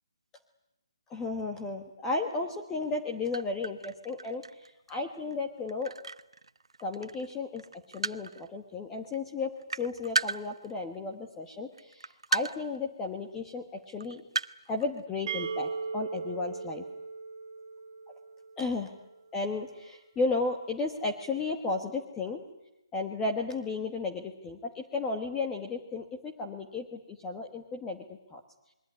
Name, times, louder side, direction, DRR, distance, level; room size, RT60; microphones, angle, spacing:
voice 1, 1.1-4.4 4.9-5.9 6.8-7.6 7.9-14.2 14.7-16.8 18.6-18.9 19.3-22.4 22.9-28.0 28.3-28.4, left 3 dB, 10° left, 2 dB, 1.2 m, -34 dB
sound 1, 3.0-3.1 3.3-7.3 7.6-8.5 9.0-9.2 9.4-11.1 11.7-12.8 13.0-13.1 13.8-15.0, right 4 dB, 90° right, 1.0 m, -35 dB
sound 2, 15.3-19.0, right 4 dB, 30° right, 1.7 m, -38 dB
27.5 x 22.0 x 9.6 m, 0.90 s
hypercardioid pair, 170°, 3 cm